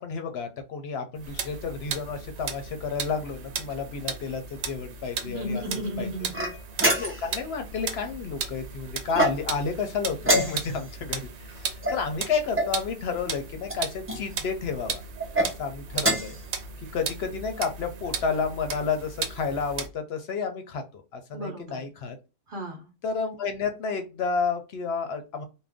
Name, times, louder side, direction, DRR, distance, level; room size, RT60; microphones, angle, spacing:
voice 1, 0.0-5.6 6.0-6.1 6.9-15.0 15.4-16.4 16.9-22.2 23.0-25.4, left 5 dB, 65° left, 7 dB, 0.8 m, -31 dB
sound 1, 1.2-19.9, right 5 dB, 75° right, 0.9 m, -36 dB
voice 2, 5.2-6.5 21.3-21.8 22.5-22.9, equal, 50° right, 2 dB, 0.9 m, -34 dB
sound 2, 6.3-7.4 9.1-9.7 10.2-10.9 11.8-12.8 13.6-14.2 15.2-15.5 15.9-16.4, right 1 dB, 15° right, 0.5 m, -26 dB
2.5 x 2.1 x 3.4 m, 0.29 s
omnidirectional pair, 1.2 m